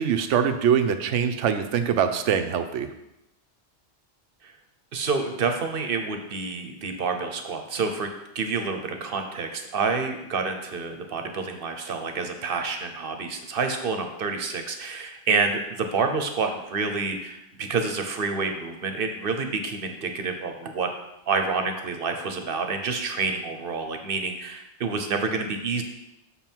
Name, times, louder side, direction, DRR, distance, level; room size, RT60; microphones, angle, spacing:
voice 1, 0.0-2.9, right 8 dB, 85° right, 8 dB, 1.0 m, -23 dB
voice 2, 4.9-20.9 21.3-25.8, right 4 dB, 55° right, 5 dB, 1.0 m, -28 dB
6.6 x 5.5 x 4.5 m, 0.89 s
omnidirectional pair, 1.2 m